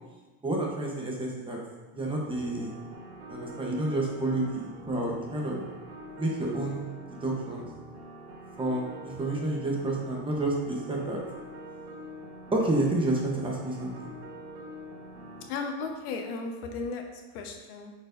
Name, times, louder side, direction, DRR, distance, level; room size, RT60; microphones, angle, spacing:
voice 1, 0.4-1.6 1.9-2.7 3.3-5.6 6.2-6.9 7.2-7.7 8.6-8.9 9.2-11.2 12.5-14.1, right 2 dB, 10° right, -2 dB, 0.9 m, -29 dB
sound 1, 2.1-15.5, equal, 85° right, 1.5 m, -45 dB
voice 2, 15.5-17.9, left 4 dB, 85° left, 3 dB, 1.1 m, -35 dB
8.6 x 4.6 x 2.6 m, 1.2 s
supercardioid pair, 140°, 43 cm